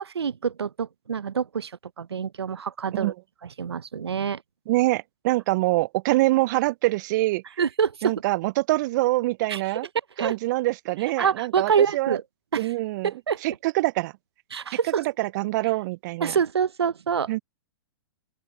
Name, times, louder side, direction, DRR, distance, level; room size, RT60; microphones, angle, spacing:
voice 1, 0.2-3.1 3.4-4.4 7.6-8.1 9.5-9.6 10.2-10.3 11.2-12.2 12.5-12.7 13.0-13.4 14.5-15.1 16.2-17.3, right 7 dB, 85° right, 0.7 m, -26 dB
voice 2, 4.7-7.4 8.0-9.9 10.2-12.2 12.6-13.1 13.4-14.1 15.2-16.4 17.3-17.4, right 19 dB, 50° right, 0.4 m, -24 dB
open air
hypercardioid pair, 115°, 13 cm